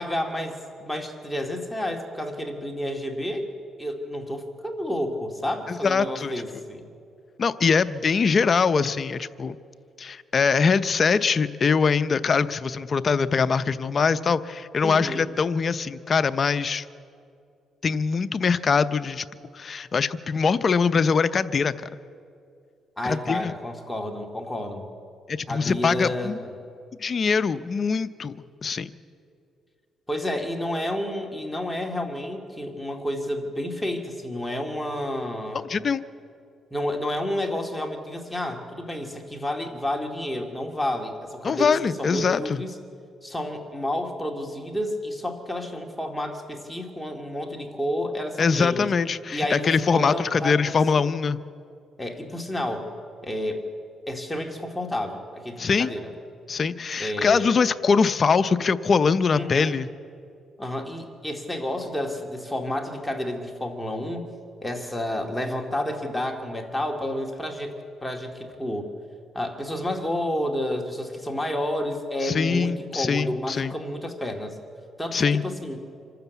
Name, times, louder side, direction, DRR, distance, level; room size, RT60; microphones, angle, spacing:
voice 1, 0.0-3.5 3.8-6.8 14.8-15.2 23.0-24.9 25.5-26.5 30.1-35.6 36.7-42.7 43.2-48.9 49.3-50.8 52.0-52.9 53.2-53.6 54.1-56.1 57.0-57.6 59.3-59.8 60.6-64.2 64.6-67.8 68.0-68.9 69.3-74.6 75.0-75.8, left 1 dB, 5° left, 2 dB, 2.3 m, -30 dB
voice 2, 5.7-6.3 7.4-9.6 10.0-16.8 17.8-19.3 19.5-21.9 23.0-23.5 25.3-26.4 27.0-28.3 28.6-28.9 35.5-36.0 41.4-42.6 48.4-51.4 55.6-55.9 56.5-59.9 72.2-73.7 75.1-75.4, left 5 dB, 45° left, 13 dB, 0.6 m, -23 dB
26.0 x 12.5 x 8.3 m, 2.5 s
cardioid pair, 90°, 0 cm